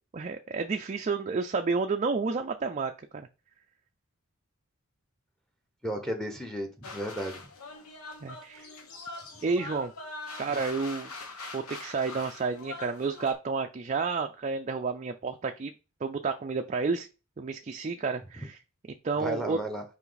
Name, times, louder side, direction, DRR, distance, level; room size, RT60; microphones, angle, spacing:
voice 1, 0.1-3.3 8.2-8.7 9.4-9.9 10.4-15.7 16.0-17.1 17.4-18.6 19.0-19.6, right 4 dB, 35° right, 5 dB, 0.4 m, -31 dB
voice 2, 5.8-7.4 18.4-18.5 19.2-19.8, equal, ahead, 5 dB, 1.1 m, -34 dB
sound 1, 6.8-13.3, left 3 dB, 90° left, 1.3 m, -43 dB
5.7 x 4.9 x 4.0 m, 0.32 s
head